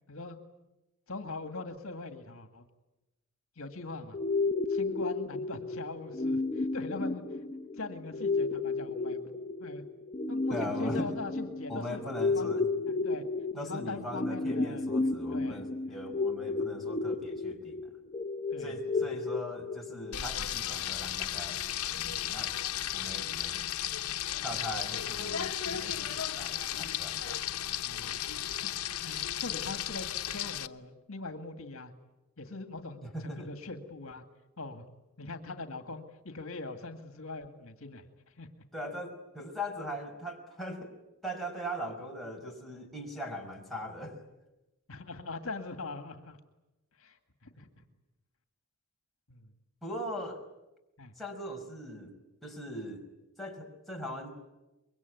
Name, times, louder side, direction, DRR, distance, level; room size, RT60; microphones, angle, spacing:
voice 1, 1.1-2.6 3.6-4.2 4.7-7.2 7.8-9.2 9.6-9.8 10.3-12.5 12.9-13.2 13.5-16.0 18.5-18.7 23.0-23.1 27.8-28.2 29.0-31.9 32.4-34.2 34.6-34.8 35.2-38.1 38.4-38.5 44.9-46.4 47.0-47.7 49.3-49.5 51.0-51.1, left 3 dB, 65° left, 7 dB, 2.1 m, -42 dB
sound 1, 4.1-20.1, left 3 dB, 30° left, 0.9 m, -33 dB
voice 2, 10.5-11.1 11.7-12.7 13.5-17.8 18.6-21.6 21.9-22.5 22.9-23.6 24.4-27.7 33.0-33.5 38.7-40.9 41.2-44.2 47.5-47.6 49.8-50.4 51.1-52.2 52.4-53.1 53.4-54.3, equal, ahead, -2 dB, 5.1 m, -40 dB
Frying (food), 20.1-30.7, left 11 dB, 85° left, 1.0 m, -34 dB
25.5 x 23.0 x 9.4 m, 1.0 s
head